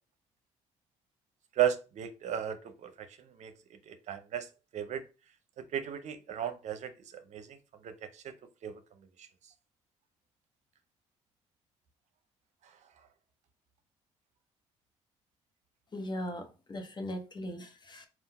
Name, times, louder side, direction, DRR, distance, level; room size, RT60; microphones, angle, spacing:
voice 1, 1.5-3.5 3.9-4.5 4.7-5.0 5.6-7.6 7.8-8.3 8.6-8.8 9.2-9.3, right 10 dB, 65° right, 0.6 m, -35 dB
voice 2, 15.9-18.1, left 1 dB, 35° left, 1.1 m, -39 dB
3.7 x 2.4 x 4.2 m
supercardioid pair, 60°, 13 cm